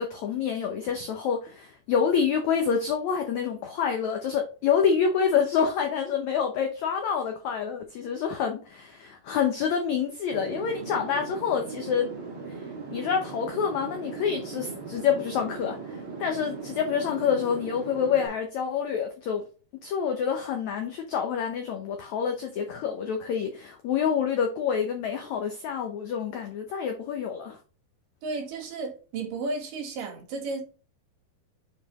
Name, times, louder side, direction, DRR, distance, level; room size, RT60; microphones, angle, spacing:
voice 1, 0.0-12.1 12.9-19.4 19.8-27.6, left 7 dB, 80° left, 1.6 m, -27 dB
sound 1, 10.3-18.3, right 4 dB, 40° right, 2.5 m, -39 dB
voice 2, 28.2-30.6, right 3 dB, 65° right, 3.0 m, -33 dB
7.0 x 4.8 x 3.0 m
omnidirectional pair, 4.3 m